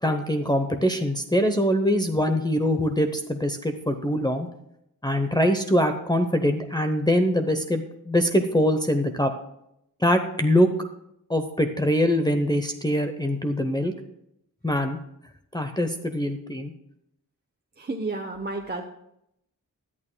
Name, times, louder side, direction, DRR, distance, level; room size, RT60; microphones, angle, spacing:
voice 1, 0.0-4.5 5.0-9.3 10.0-10.7 11.3-13.9 14.6-15.0 15.5-16.7, equal, 10° left, 4 dB, 0.7 m, -23 dB
voice 2, 17.8-18.8, right 3 dB, 30° right, 2 dB, 0.8 m, -31 dB
17.0 x 11.0 x 2.2 m, 0.80 s
wide cardioid pair, 85°, 34 cm